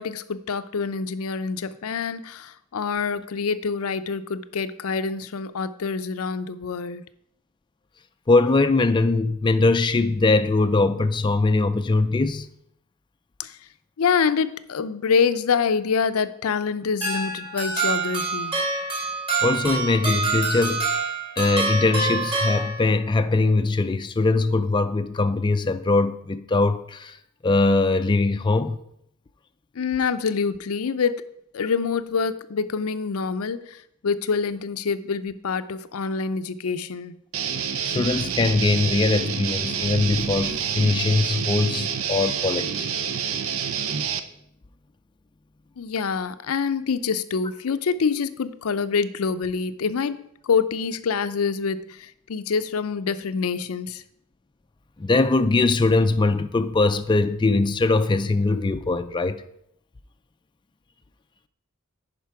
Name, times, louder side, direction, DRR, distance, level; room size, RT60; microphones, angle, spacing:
voice 1, 0.0-7.1 13.4-13.6 14.0-18.6 29.7-31.3 31.5-37.2 45.8-54.0, left 5 dB, 80° left, 0.5 m, -26 dB
voice 2, 8.3-12.5 19.4-20.9 21.4-27.2 27.4-28.8 37.8-42.9 55.0-59.4, left 3 dB, 20° left, 0.4 m, -21 dB
sound 1, 17.0-23.2, right 4 dB, 25° right, 3.1 m, -26 dB
Guitar, 37.3-44.2, right 7 dB, 70° right, 0.6 m, -28 dB
10.5 x 5.2 x 4.7 m
head